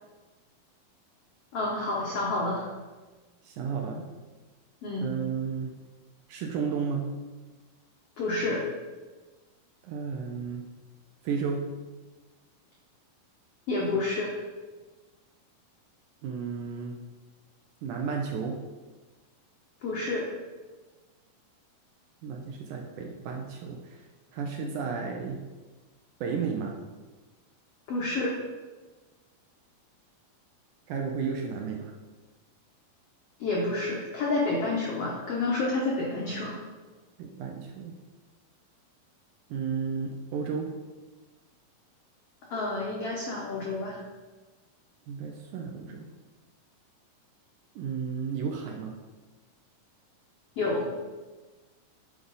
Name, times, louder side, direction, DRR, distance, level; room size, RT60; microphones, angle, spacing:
voice 1, 1.5-2.7 4.8-5.1 8.2-8.7 13.7-14.4 19.8-20.3 27.9-28.4 33.4-36.6 42.5-44.0 50.6-50.9, left 2 dB, 80° left, -3 dB, 1.3 m, -29 dB
voice 2, 3.4-4.1 5.0-5.8 6.3-7.0 9.8-10.7 11.2-11.6 16.2-17.0 17.8-18.6 22.2-24.0 24.3-25.4 26.2-26.8 30.9-31.9 37.2-37.9 39.5-40.7 45.1-46.1 47.8-49.0, right 6 dB, 75° right, 1 dB, 1.9 m, -33 dB
7.8 x 4.8 x 3.9 m, 1.3 s
omnidirectional pair, 4.1 m